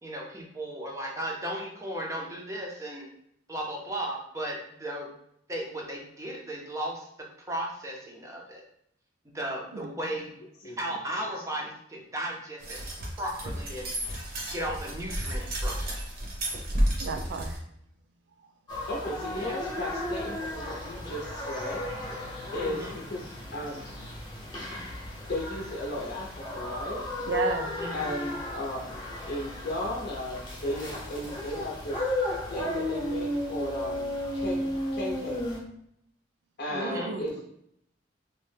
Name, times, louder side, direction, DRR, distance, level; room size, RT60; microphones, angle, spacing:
voice 1, 0.0-3.1 3.5-5.1 5.5-7.1 7.4-8.6 9.3-10.3 10.8-12.8 13.2-13.9 14.5-15.9 19.3-19.6 22.6-22.9 27.8-28.1 36.8-37.1, right 1 dB, 15° right, -1 dB, 0.5 m, -35 dB
voice 2, 9.7-10.1 17.0-17.6 27.3-27.7 36.7-37.4, right 4 dB, 70° right, 5 dB, 0.4 m, -33 dB
sound 1, 12.6-17.6, equal, 55° right, 0.8 m, -31 dB
sound 2, 18.7-35.6, left 1 dB, 25° left, 0.8 m, -34 dB
voice 3, 18.9-21.8 22.5-23.9 25.3-27.1 27.9-29.0 29.2-32.0 32.5-35.4 36.6-37.4, left 1 dB, 60° left, -3 dB, 0.6 m, -35 dB
2.7 x 2.1 x 3.2 m, 0.72 s
head